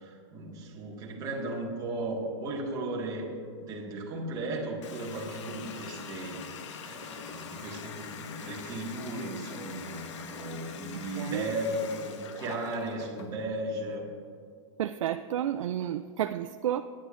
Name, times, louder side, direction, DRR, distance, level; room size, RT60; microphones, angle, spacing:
voice 1, 0.0-3.3 3.6-6.4 6.8-14.1, right 1 dB, 25° right, -4 dB, 1.8 m, -36 dB
Water tap faucet, 4.8-13.3, left 6 dB, 65° left, 1.0 m, -43 dB
voice 2, 11.1-11.5 14.8-16.8, right 11 dB, 80° right, 9 dB, 0.4 m, -31 dB
22.5 x 10.5 x 2.6 m, 2.2 s
hypercardioid pair, 150°, 16 cm